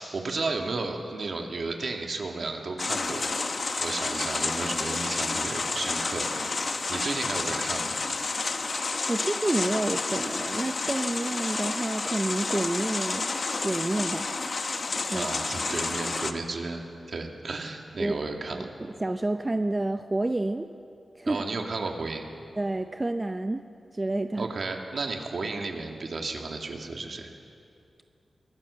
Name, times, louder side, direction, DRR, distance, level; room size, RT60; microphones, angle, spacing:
voice 1, 0.0-3.4 3.8-6.4 6.9-7.9 15.1-16.8 17.1-18.7 21.2-22.2 24.4-27.3, right 3 dB, 60° right, 2 dB, 2.3 m, -33 dB
sound 1, 2.8-16.3, left 3 dB, 50° left, 1.2 m, -30 dB
voice 2, 9.1-13.3 13.6-14.3 15.1-15.3 18.0-18.1 18.5-20.7 21.1-21.4 22.6-23.6 23.9-24.5, right 2 dB, 25° right, 7 dB, 0.6 m, -29 dB
23.5 x 16.5 x 7.0 m, 2.5 s
wide cardioid pair, 90°, 0 cm